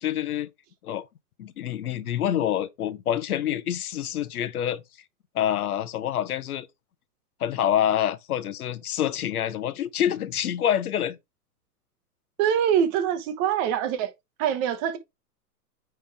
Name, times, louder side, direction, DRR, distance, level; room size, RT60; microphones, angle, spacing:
voice 1, 0.0-0.5 0.8-1.0 1.4-4.8 5.3-6.7 7.4-11.2, left 10 dB, 65° left, 1.0 m, -27 dB
voice 2, 12.4-14.1 14.4-15.0, right 9 dB, 30° right, 1.0 m, -24 dB
9.0 x 3.5 x 3.3 m
hypercardioid pair, 120°, 47 cm